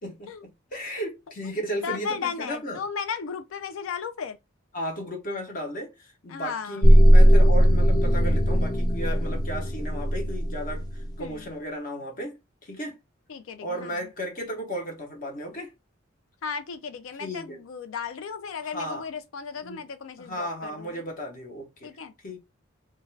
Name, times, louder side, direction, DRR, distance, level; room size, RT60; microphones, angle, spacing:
voice 1, 0.0-2.8 4.7-12.4 12.6-13.0 13.6-15.7 17.2-17.6 18.7-19.0 19.6-19.8 20.2-21.9 22.2-22.4, equal, 45° left, 0.7 m, -35 dB
voice 2, 1.8-4.4 6.3-6.8 11.2-11.5 13.3-14.1 16.4-21.0 21.8-22.1, left 6 dB, 90° left, 0.4 m, -35 dB
sound 1, 6.8-11.1, equal, 20° left, 0.3 m, -18 dB
2.4 x 2.2 x 3.1 m
head